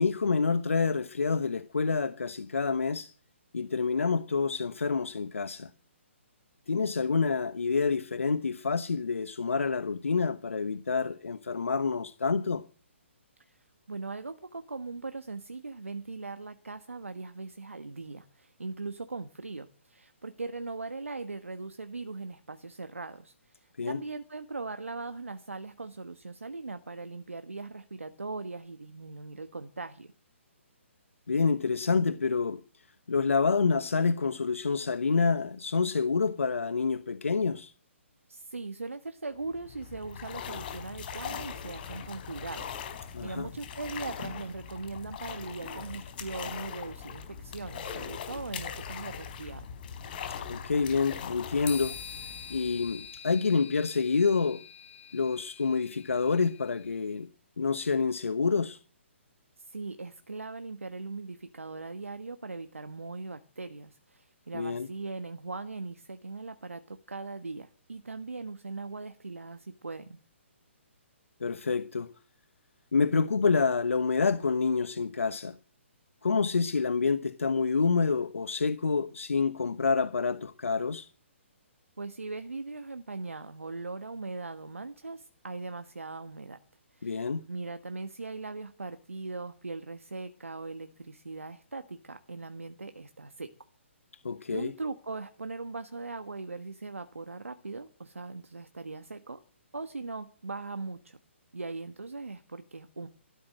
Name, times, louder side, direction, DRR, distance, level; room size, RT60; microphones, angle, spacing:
voice 1, 0.0-3.1 3.5-5.7 6.7-12.6 23.8-24.0 31.3-32.6 33.1-37.7 43.1-43.5 50.5-52.0 52.5-54.6 55.1-57.3 57.6-58.8 64.5-64.9 71.4-72.1 72.9-75.6 76.2-81.1 87.0-87.4 94.2-94.7, left 4 dB, 80° left, 1.0 m, -27 dB
voice 2, 13.9-30.1 38.3-49.7 59.6-70.2 82.0-86.6 86.9-93.5 94.5-99.4 99.7-101.2 101.5-103.1, right 3 dB, 90° right, 1.3 m, -40 dB
sound 1, 39.4-53.2, left 7 dB, 45° left, 4.3 m, -41 dB
sound 2, 51.7-57.0, left 8 dB, 20° left, 4.0 m, -45 dB
14.5 x 12.5 x 7.7 m
figure-of-eight pair, 135°, 7 cm